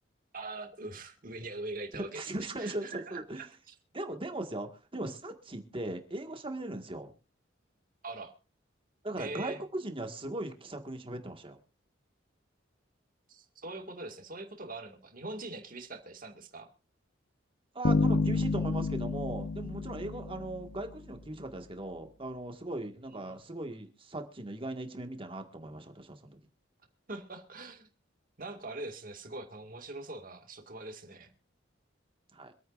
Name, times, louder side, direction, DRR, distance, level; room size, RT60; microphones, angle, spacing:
voice 1, 0.3-2.3 2.6-3.7 8.0-8.3 9.2-9.6 13.3-16.7 23.1-23.4 27.1-27.9 28.4-31.3, right 2 dB, 45° right, 5 dB, 2.1 m, -42 dB
voice 2, 1.9-3.4 3.9-7.1 9.0-11.6 17.7-26.4 32.3-32.5, right 1 dB, 30° right, 5 dB, 1.8 m, -38 dB
Bass guitar, 17.8-20.9, left 4 dB, 75° left, 1.0 m, -30 dB
26.0 x 9.2 x 2.6 m, 0.31 s
head